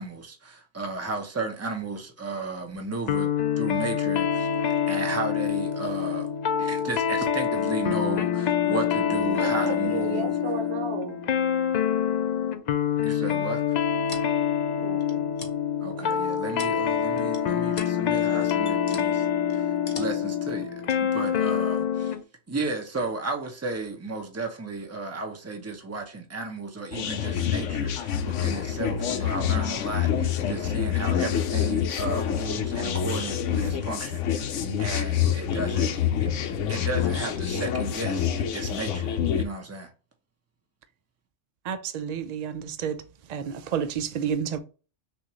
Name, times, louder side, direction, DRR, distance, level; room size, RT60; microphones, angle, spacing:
voice 1, 0.0-4.5 4.9-6.3 6.6-10.3 13.0-13.6 15.8-22.2 22.5-34.5 34.8-39.9, right 3 dB, 15° right, 0.7 m, -34 dB
sound 1, 3.1-22.2, left 8 dB, 70° left, 0.4 m, -26 dB
voice 2, 9.3-11.2 14.7-15.4 15.9-16.3, right 6 dB, 65° right, 1.0 m, -35 dB
sound 2, 13.7-14.3 15.0-15.5 16.1-16.8 17.2-17.4 17.7-17.9 18.2-19.1 19.5-20.3 20.9-21.0, left 4 dB, 45° left, 1.0 m, -41 dB
sound 3, 26.9-39.4, left 9 dB, 85° left, 1.0 m, -27 dB
voice 3, 41.7-43.0 43.3-44.6, right 7 dB, 90° right, 0.3 m, -30 dB
6.1 x 2.5 x 3.0 m
omnidirectional pair, 1.3 m